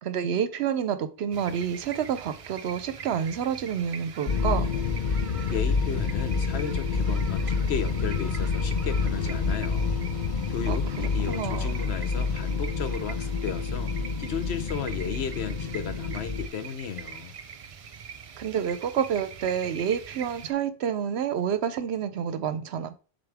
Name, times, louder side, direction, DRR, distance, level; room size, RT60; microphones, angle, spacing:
voice 1, 0.0-4.7 10.7-10.8 11.3-11.8 18.4-23.0, right 8 dB, 75° right, 0.9 m, -28 dB
sound 1, 1.3-20.5, right 7 dB, 55° right, 0.4 m, -43 dB
sound 2, 4.3-16.5, left 4 dB, 55° left, 0.6 m, -28 dB
voice 2, 5.5-9.9 10.5-13.9 14.2-17.3, left 6 dB, 70° left, 1.1 m, -34 dB
7.0 x 3.9 x 3.4 m
omnidirectional pair, 1.1 m